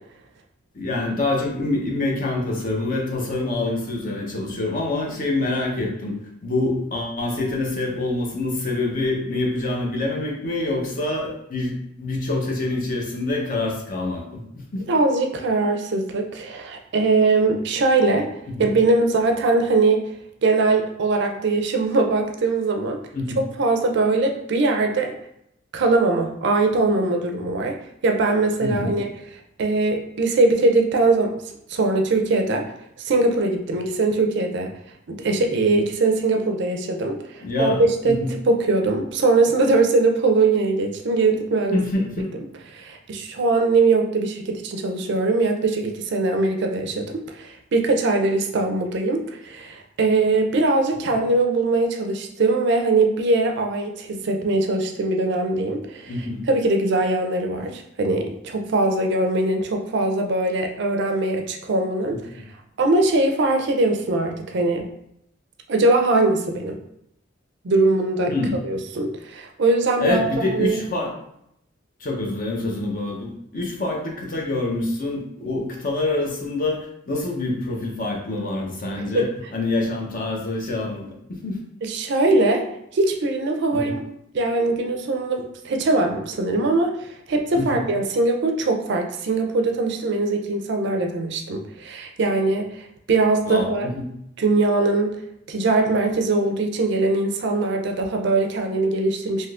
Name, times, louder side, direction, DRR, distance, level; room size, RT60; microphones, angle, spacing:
voice 1, 0.7-6.1 6.4-14.8 18.5-18.7 23.1-23.4 28.6-29.0 37.4-38.3 41.7-42.3 51.1-51.2 56.1-56.4 68.3-68.6 70.0-71.1 72.0-81.6 83.7-83.9 87.5-87.8 93.4-94.0, left 2 dB, 45° left, -1 dB, 0.7 m, -26 dB
voice 2, 14.9-18.3 18.6-20.0 20.4-23.0 23.4-25.1 25.7-27.7 28.0-29.1 29.6-31.3 31.7-32.6 33.0-34.7 35.1-41.8 42.7-62.2 62.8-64.9 65.7-66.8 67.6-68.3 68.6-70.8 79.1-79.3 81.8-82.7 82.9-84.0 84.3-93.9 94.4-95.2 95.5-99.5, right 3 dB, 60° right, 3 dB, 0.4 m, -21 dB
3.5 x 2.7 x 2.3 m, 0.76 s
head